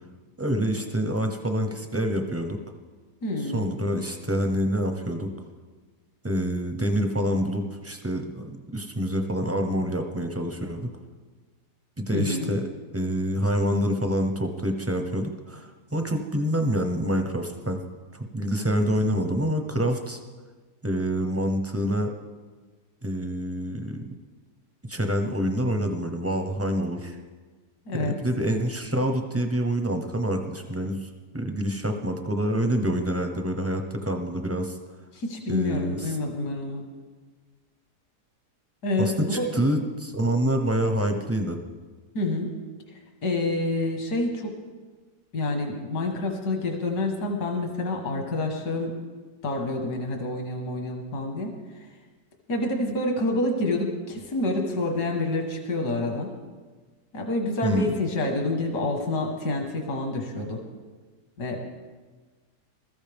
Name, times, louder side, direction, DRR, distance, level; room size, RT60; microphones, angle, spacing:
voice 1, 0.4-2.6 3.5-5.3 6.2-10.9 12.0-12.6 12.9-17.8 18.1-20.2 20.8-22.1 23.0-24.2 24.9-27.2 27.9-31.1 31.3-34.8 35.5-36.2 39.0-41.6 57.6-57.9, equal, 20° right, 5 dB, 0.4 m, -27 dB
voice 2, 3.2-3.7 12.1-12.5 27.9-28.2 35.1-36.9 38.8-39.4 42.1-42.5 43.2-44.5 45.3-48.9 49.4-51.5 52.5-56.3 57.1-60.6 61.4-61.6, left 2 dB, 75° left, 2 dB, 2.1 m, -28 dB
21.0 x 13.5 x 3.5 m, 1.4 s
omnidirectional pair, 1.7 m